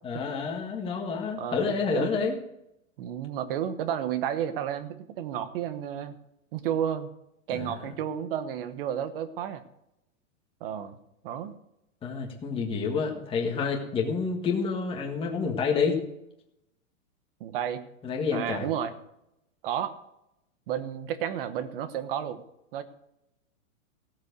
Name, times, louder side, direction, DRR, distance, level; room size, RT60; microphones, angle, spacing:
voice 1, 0.0-2.3 7.5-7.7 12.0-16.0 18.0-18.6, left 5 dB, 15° left, 1 dB, 1.6 m, -28 dB
voice 2, 1.4-2.1 3.0-6.1 6.5-7.1 7.5-9.6 10.6-11.0 11.2-11.5 17.4-17.8 18.3-18.9 19.6-19.9 20.7-22.4 22.7-22.8, right 9 dB, 40° right, 12 dB, 1.2 m, -31 dB
16.5 x 7.5 x 6.7 m, 0.84 s
supercardioid pair, 160°, 41 cm